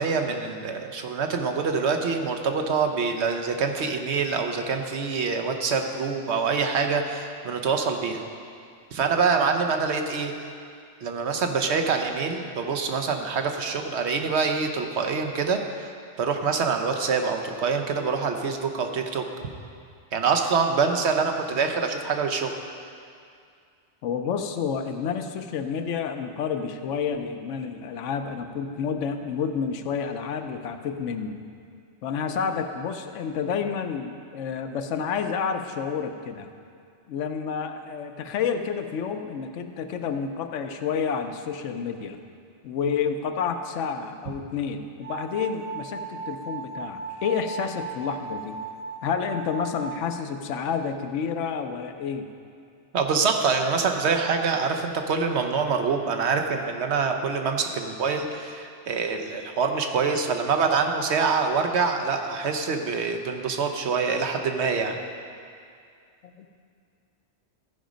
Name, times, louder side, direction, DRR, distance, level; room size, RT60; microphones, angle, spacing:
voice 1, 0.0-8.2 8.9-10.3 11.0-15.9 16.2-19.2 20.1-22.5 52.9-65.0, right 5 dB, 65° right, 5 dB, 1.0 m, -25 dB
voice 2, 24.0-31.4 32.0-36.5 37.1-42.2 42.6-48.6 49.0-52.3 66.2-66.5, left 6 dB, 85° left, 7 dB, 1.0 m, -29 dB
sound 1, 45.0-50.0, right 5 dB, 50° right, 0.4 m, -37 dB
14.5 x 5.1 x 5.1 m, 2.3 s
omnidirectional pair, 1.2 m